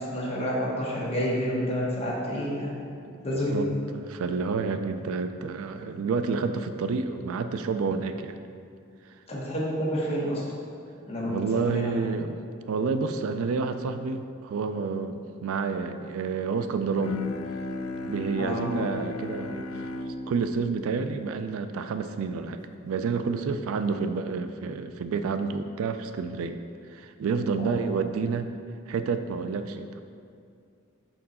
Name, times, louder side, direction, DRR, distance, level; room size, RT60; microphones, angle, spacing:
voice 1, 0.0-2.7 3.2-3.6 9.3-10.4 11.1-11.9 18.4-18.7 27.6-27.8, equal, 30° left, -5 dB, 1.3 m, -29 dB
voice 2, 3.5-8.4 11.2-12.3 12.7-17.2 18.0-19.8 20.3-26.6 26.9-28.5 28.9-30.0, right 5 dB, 75° right, 9 dB, 0.3 m, -29 dB
Bowed string instrument, 17.0-22.4, left 3 dB, 85° left, 0.4 m, -36 dB
6.4 x 4.5 x 4.2 m, 2.3 s
head